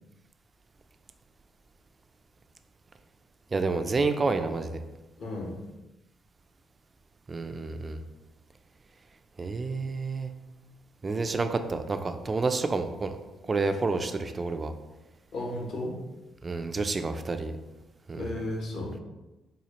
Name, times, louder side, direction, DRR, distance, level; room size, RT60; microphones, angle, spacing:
voice 1, 3.5-4.8 7.3-8.0 9.4-10.3 11.0-13.2 13.5-14.7 16.4-17.5 18.1-18.3, right 3 dB, 30° right, 8 dB, 0.3 m, -29 dB
voice 2, 5.2-5.6 15.3-16.0 18.1-19.0, left 1 dB, 70° left, -1 dB, 0.9 m, -34 dB
4.3 x 2.4 x 2.9 m, 1.1 s
cardioid pair, 90°, 0 cm